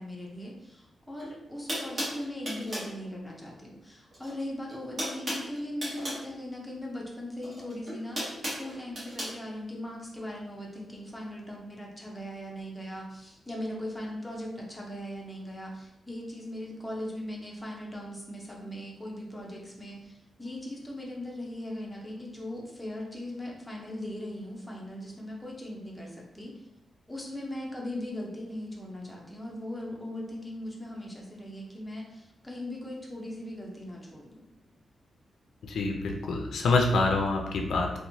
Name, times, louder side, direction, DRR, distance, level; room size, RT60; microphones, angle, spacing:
voice 1, 0.0-20.1 20.4-26.5 27.1-34.5, left 1 dB, 5° left, -3 dB, 0.5 m, -39 dB
sound 1, 1.2-1.3 1.7-2.9 4.1-4.4 4.7-6.2 7.4-9.3, equal, 35° right, 1.0 m, -35 dB
voice 2, 35.6-38.1, left 3 dB, 80° left, 1 dB, 0.4 m, -26 dB
2.9 x 2.1 x 2.7 m, 0.87 s
wide cardioid pair, 155°, 0 cm